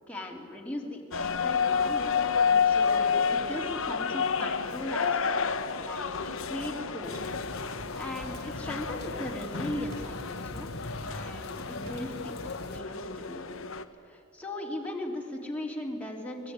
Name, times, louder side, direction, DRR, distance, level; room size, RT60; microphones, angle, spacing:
voice 1, 0.1-2.0 2.6-5.4 5.8-7.1 7.9-10.7 11.0-13.4 14.0-16.5, left 1 dB, 5° left, -1 dB, 3.4 m, -38 dB
sound 1, 1.1-13.8, left 6 dB, 65° left, 1.2 m, -30 dB
sound 2, 7.0-12.8, left 2 dB, 50° left, 1.6 m, -42 dB
sound 3, 7.1-7.7 9.9-10.4 11.8-12.4, right 1 dB, 70° right, 4.0 m, -51 dB
24.0 x 21.0 x 9.7 m, 2.3 s
head